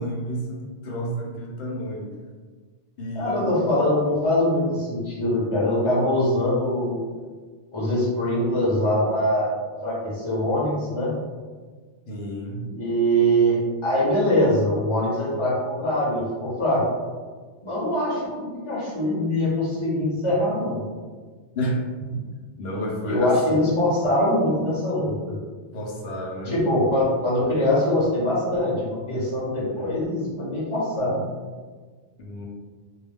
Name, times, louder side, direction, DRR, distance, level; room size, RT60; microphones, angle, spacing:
voice 1, 0.0-2.2 3.0-3.5 12.1-12.7 21.6-21.8 22.1-22.2 22.6-23.6 25.7-26.6 29.7-29.9 32.2-32.4, equal, 65° left, -2 dB, 0.8 m, -31 dB
voice 2, 3.1-7.0 7.7-11.1 12.7-16.8 17.6-20.8 23.0-25.1 26.5-31.2, equal, 30° left, -7 dB, 0.8 m, -23 dB
2.2 x 2.2 x 3.3 m, 1.5 s
omnidirectional pair, 1.2 m